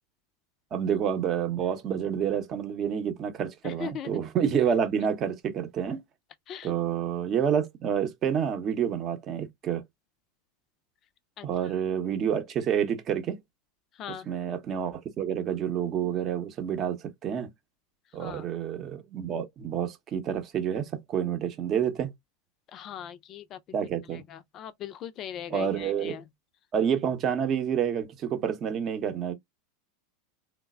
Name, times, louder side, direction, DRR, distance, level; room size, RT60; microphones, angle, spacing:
voice 1, 0.7-6.0 6.6-9.8 11.4-13.4 14.3-17.5 18.1-22.1 23.7-24.2 25.5-26.1 26.7-29.3, right 8 dB, 40° right, 0.7 m, -28 dB
voice 2, 3.6-4.3 6.5-6.7 11.4-11.7 13.9-14.3 18.2-18.5 22.7-23.6 24.1-26.2, left 9 dB, 40° left, 0.4 m, -40 dB
3.1 x 2.0 x 2.3 m
hypercardioid pair, 95°, 0 cm